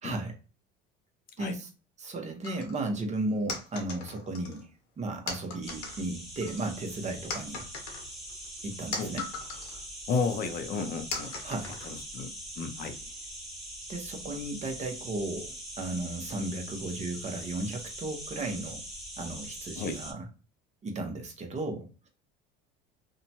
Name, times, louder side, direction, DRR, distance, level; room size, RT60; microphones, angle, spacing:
voice 1, 0.0-0.3 1.4-1.7 2.0-4.7 5.0-7.6 8.6-9.3 11.4-11.8 13.9-18.8 19.2-20.3 20.8-22.1, right 2 dB, 35° right, 3 dB, 0.8 m, -35 dB
sound 1, 2.4-2.8 3.5-4.6 5.3-6.0 6.4-7.0 7.3-9.8 10.3-10.4 11.1-12.2, left 4 dB, 90° left, 1.0 m, -39 dB
sound 2, 5.6-20.1, right 1 dB, ahead, 1.5 m, -42 dB
voice 2, 10.1-11.3 12.1-13.0 19.8-20.0, left 4 dB, 45° left, 7 dB, 0.6 m, -32 dB
2.8 x 2.2 x 2.7 m, 0.34 s
supercardioid pair, 100°, 21 cm